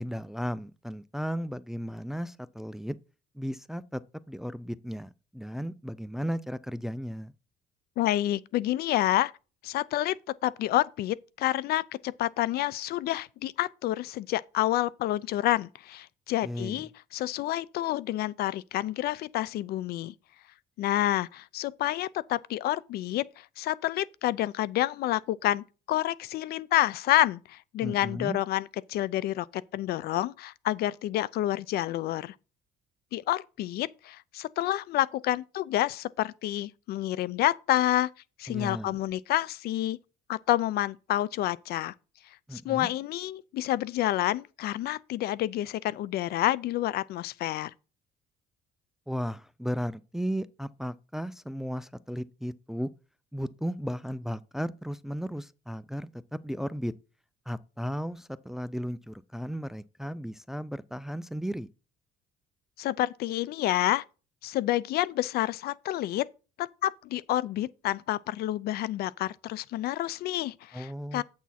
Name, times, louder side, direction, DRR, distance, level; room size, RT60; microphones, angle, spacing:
voice 1, 0.0-3.0 3.4-4.0 4.3-7.3 16.4-16.8 27.8-28.4 38.5-39.0 42.5-42.9 49.1-52.9 53.3-56.9 57.5-61.7 70.7-71.2, equal, ahead, 0.3 m, -35 dB
voice 2, 8.0-9.3 9.6-10.2 10.4-20.1 20.8-32.3 33.1-38.1 38.4-40.0 40.3-41.9 42.5-47.7 62.8-64.0 64.4-66.3 66.6-71.2, left 14 dB, 70° left, 0.5 m, -29 dB
8.3 x 6.2 x 4.2 m
cardioid pair, 110°, 17 cm